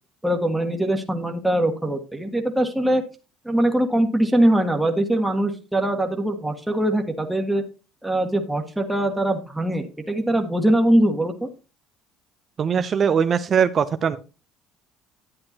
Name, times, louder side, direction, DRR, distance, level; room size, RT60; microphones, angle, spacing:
voice 1, 0.2-3.0 3.4-7.6 8.0-11.5, right 1 dB, 5° right, 3 dB, 1.6 m, -22 dB
voice 2, 12.6-14.2, right 7 dB, 45° right, 10 dB, 0.7 m, -21 dB
11.0 x 8.5 x 2.9 m, 0.32 s
supercardioid pair, 80°, 0 cm